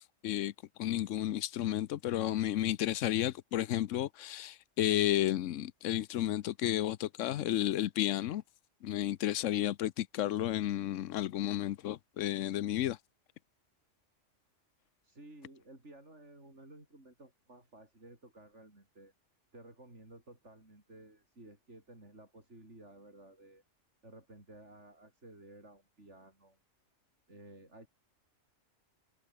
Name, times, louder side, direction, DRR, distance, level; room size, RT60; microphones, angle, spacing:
voice 1, 0.8-8.4 8.8-13.0, left 12 dB, 80° left, 1.0 m, -32 dB
voice 2, 15.0-19.1 19.5-23.6 24.0-26.6 27.3-27.9, right 2 dB, 70° right, 6.9 m, -55 dB
omnidirectional pair, 1.3 m